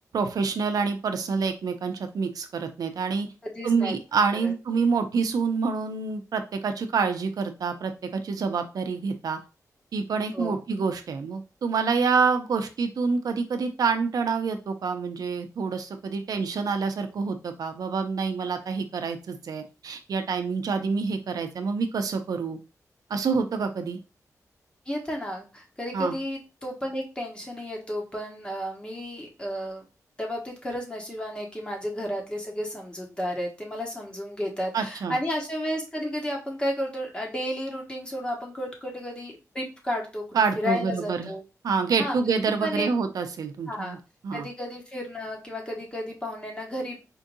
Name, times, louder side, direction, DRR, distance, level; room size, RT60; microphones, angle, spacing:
voice 1, 0.1-3.3 3.6-9.4 9.9-22.6 23.1-24.0 25.9-26.1 34.7-35.2 40.3-41.3 41.6-44.0 44.2-44.5, right 5 dB, 80° right, 7 dB, 0.5 m, -27 dB
voice 2, 3.4-3.9 4.4-4.5 10.3-10.6 24.9-29.8 30.2-40.2 40.5-41.4 42.0-42.3 42.6-42.9 43.7-44.0 44.3-47.0, equal, 15° left, 0 dB, 1.2 m, -32 dB
4.5 x 2.6 x 2.6 m, 0.30 s
wide cardioid pair, 120°, 6 cm